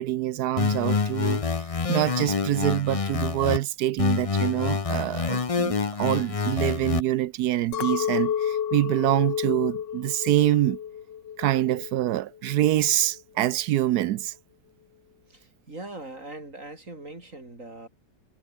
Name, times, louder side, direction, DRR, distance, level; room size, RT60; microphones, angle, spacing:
voice 1, 0.0-1.4 1.9-10.8 11.4-14.3, right 14 dB, 70° right, 1.0 m, -25 dB
sound 1, 0.6-3.6 4.0-7.0, left 5 dB, 35° left, 0.5 m, -26 dB
Chink clink, 7.7-12.1 12.5-13.1, left 9 dB, 90° left, 2.0 m, -31 dB
voice 2, 15.3-17.9, right 2 dB, 45° right, 5.3 m, -41 dB
omnidirectional pair, 1.9 m